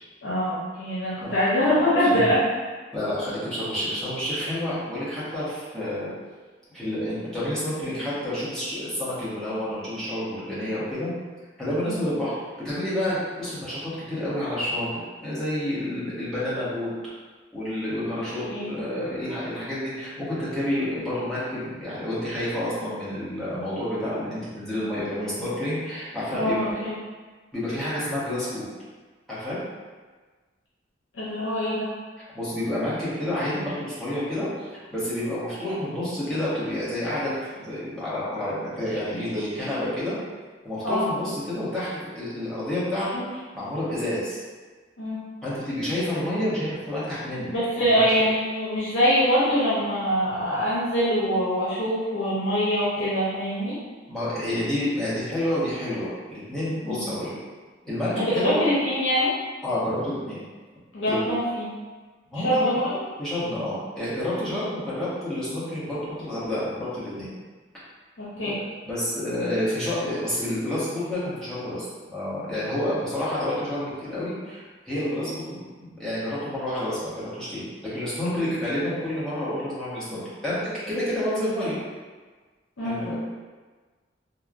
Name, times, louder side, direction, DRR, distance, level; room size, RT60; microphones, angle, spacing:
voice 1, 0.2-2.4 11.8-12.0 18.5-18.8 26.3-26.9 31.2-31.9 40.8-41.1 45.0-45.2 47.5-53.8 56.8-57.0 58.2-59.3 60.9-61.7 62.3-63.0 68.2-68.5 82.8-83.0, equal, 75° left, -9 dB, 0.6 m, -24 dB
voice 2, 2.0-2.3 2.9-6.1 6.7-11.1 11.6-12.3 12.6-14.9 15.2-16.9 17.5-26.7 27.5-28.7 29.3-29.6 32.3-40.1 40.6-41.9 42.2-44.4 45.4-47.5 47.9-48.2 54.1-57.3 57.8-58.6 59.6-60.4 61.1-61.3 62.3-62.8 63.2-67.3 68.4-81.7 82.8-83.2, left 1 dB, 5° left, -12 dB, 0.9 m, -29 dB
3.0 x 2.0 x 2.4 m, 1.4 s
head